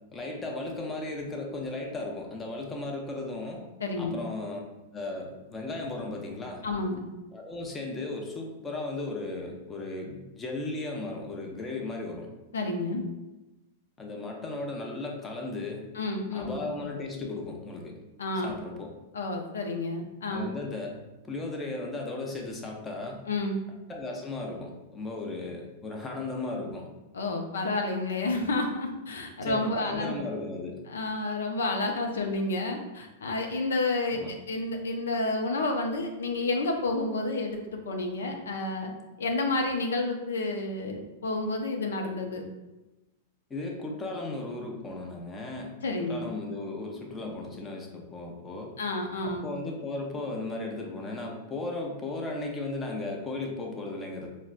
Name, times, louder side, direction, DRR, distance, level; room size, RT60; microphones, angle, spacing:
voice 1, 0.1-3.6 4.0-4.6 4.9-6.6 7.3-12.3 14.0-15.9 16.3-18.0 18.4-18.9 20.3-21.0 21.3-23.2 23.9-26.9 29.4-30.8 34.1-34.3 43.5-45.7 46.0-48.7 49.2-54.3, left 2 dB, 20° left, 0 dB, 0.6 m, -36 dB
voice 2, 3.8-4.2 6.6-7.0 12.5-13.0 15.9-16.6 18.2-18.5 19.1-20.5 23.3-23.6 27.1-30.2 30.9-38.9 39.2-42.4 45.8-46.3 48.8-49.5, left 2 dB, 85° left, 3 dB, 0.4 m, -30 dB
4.1 x 2.1 x 2.4 m, 1.0 s
hypercardioid pair, 115°, 0 cm